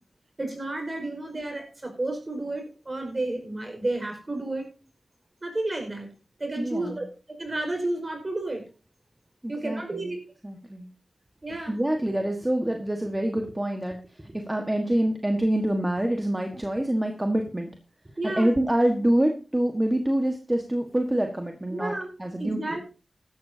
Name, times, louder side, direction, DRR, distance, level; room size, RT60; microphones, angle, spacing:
voice 1, 0.4-4.7 5.4-6.1 6.4-8.6 9.5-10.2 11.4-11.8 18.2-18.5 21.7-22.1 22.4-22.8, right 2 dB, 40° right, 4 dB, 5.1 m, -31 dB
voice 2, 6.6-7.0 9.4-10.1 10.4-10.9 11.7-17.7 18.2-21.9 22.2-22.8, right 1 dB, 15° right, 3 dB, 1.5 m, -26 dB
15.5 x 12.5 x 2.8 m, 0.33 s
wide cardioid pair, 65°, 0 cm